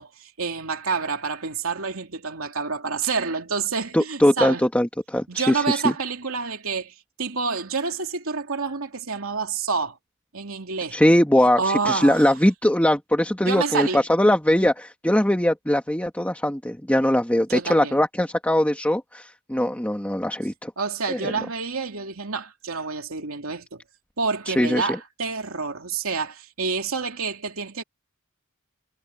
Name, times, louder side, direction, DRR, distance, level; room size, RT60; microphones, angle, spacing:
voice 1, 0.0-4.6 5.3-10.0 10.3-11.0 11.6-12.3 13.5-14.0 17.5-17.9 20.8-23.8 24.2-27.8, right 5 dB, 80° right, 2.9 m, -28 dB
voice 2, 3.9-5.9 10.9-20.7 21.1-21.3 24.5-25.0, left 1 dB, 5° left, 1.8 m, -21 dB
head